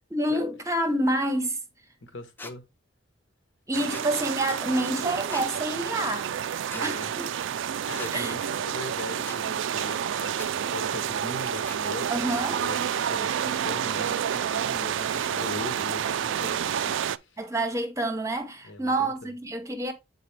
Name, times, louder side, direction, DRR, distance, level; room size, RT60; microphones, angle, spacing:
voice 1, 0.1-1.6 3.7-6.3 6.8-7.3 8.1-8.3 12.1-12.6 17.4-19.9, right 1 dB, 15° right, 0.8 m, -28 dB
voice 2, 2.0-2.6 6.7-7.1 7.8-12.3 12.6-17.4 18.6-19.3, left 2 dB, 75° left, 1.3 m, -40 dB
sound 1, 2.4-2.5 3.9-4.1 5.3-5.5 6.7-6.8 8.0-8.1 9.2-9.4 10.3-10.5 11.6-11.8, left 2 dB, 10° left, 0.4 m, -41 dB
sound 2, 3.7-17.2, right 8 dB, 75° right, 0.3 m, -29 dB
8.0 x 4.1 x 3.2 m
head